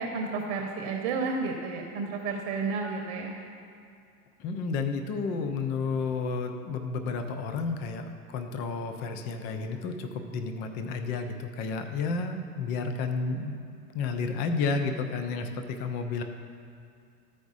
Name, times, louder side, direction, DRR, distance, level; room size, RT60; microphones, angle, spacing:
voice 1, 0.0-3.3, right 4 dB, 45° right, 2 dB, 1.0 m, -31 dB
voice 2, 4.4-13.5 13.9-16.2, left 4 dB, 25° left, 6 dB, 0.3 m, -31 dB
14.0 x 4.9 x 4.0 m, 2.4 s
hypercardioid pair, 115°, 47 cm